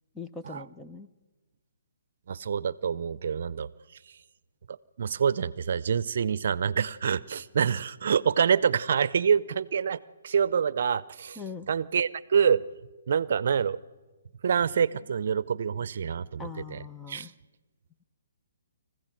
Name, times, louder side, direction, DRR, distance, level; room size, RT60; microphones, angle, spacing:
voice 1, 0.1-1.1 11.4-11.7 16.4-17.3, left 5 dB, 10° left, 8 dB, 0.6 m, -41 dB
voice 2, 2.3-3.7 4.7-11.4 11.7-12.6 13.1-13.8 14.4-16.8 17.1-17.3, right 7 dB, 60° right, 19 dB, 0.6 m, -26 dB
25.5 x 15.5 x 7.5 m, 1.2 s
hypercardioid pair, 150°, 0 cm